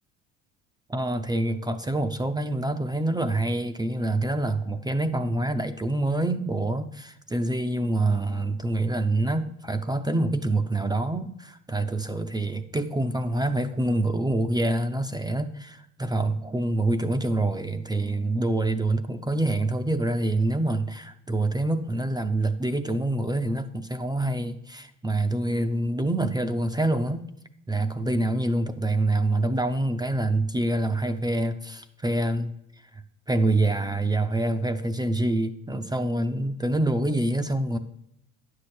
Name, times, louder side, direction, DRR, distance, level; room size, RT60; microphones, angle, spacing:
voice 1, 0.9-27.2 27.7-32.5 33.3-37.8, right 2 dB, 10° right, 7 dB, 0.5 m, -26 dB
9.5 x 6.7 x 4.3 m, 0.80 s
supercardioid pair, 85°, 36 cm